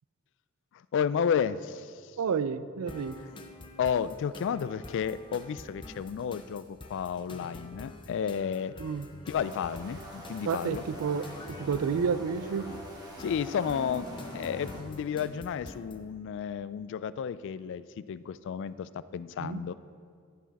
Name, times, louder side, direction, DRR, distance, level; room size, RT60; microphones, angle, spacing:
voice 1, 0.9-1.9 3.8-8.7 9.3-10.8 13.2-19.7, left 7 dB, 60° left, 15 dB, 0.3 m, -32 dB
voice 2, 2.2-3.1 8.8-9.1 10.5-11.3 11.6-12.7 19.4-19.6, right 6 dB, 80° right, 14 dB, 0.4 m, -30 dB
sound 1, 2.9-16.0, left 2 dB, 25° left, 0.6 m, -46 dB
sound 2, 9.3-14.8, equal, 20° right, 1.4 m, -45 dB
14.5 x 6.3 x 4.1 m, 2.1 s
head